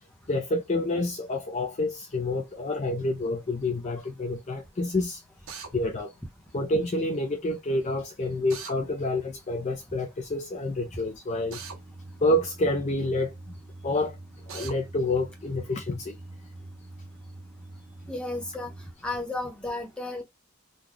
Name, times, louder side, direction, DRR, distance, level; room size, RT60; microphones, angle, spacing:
voice 1, 0.3-5.2 5.7-6.1 6.5-11.6 12.2-13.3 13.8-14.2 14.5-16.2, left 1 dB, 30° left, 0.4 m, -28 dB
Drill, 5.5-5.7 8.5-8.8 11.5-11.8 14.5-14.8, right 6 dB, 65° right, 1.0 m, -39 dB
sound 1, 11.4-18.9, right 2 dB, 25° right, 0.4 m, -45 dB
voice 2, 18.1-18.7 19.0-20.2, left 2 dB, 5° left, 1.0 m, -33 dB
3.8 x 2.3 x 3.1 m
head